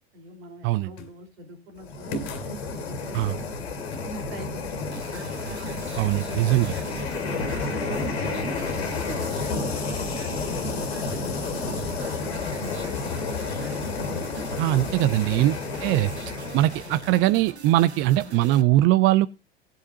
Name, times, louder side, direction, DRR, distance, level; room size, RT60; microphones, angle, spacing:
voice 1, 0.1-2.2 2.7-3.5 3.9-5.0 7.0-7.1 7.4-10.7 11.0-12.0 12.3-13.8, right 1 dB, 65° right, 6 dB, 3.3 m, -44 dB
sound 1, 1.0-1.2 2.1-2.6 3.9-4.2 9.2-9.5 11.1-11.4, equal, 50° left, 2.2 m, -37 dB
sound 2, 1.8-17.2, left 4 dB, 70° left, 2.2 m, -31 dB
sound 3, 4.9-18.6, right 5 dB, 85° right, 1.0 m, -42 dB
voice 2, 6.0-6.7 14.6-15.5 15.8-16.1 16.5-19.3, right 15 dB, 40° right, 14 dB, 0.5 m, -21 dB
18.0 x 8.3 x 2.7 m, 0.26 s
figure-of-eight pair, 80°, 32 cm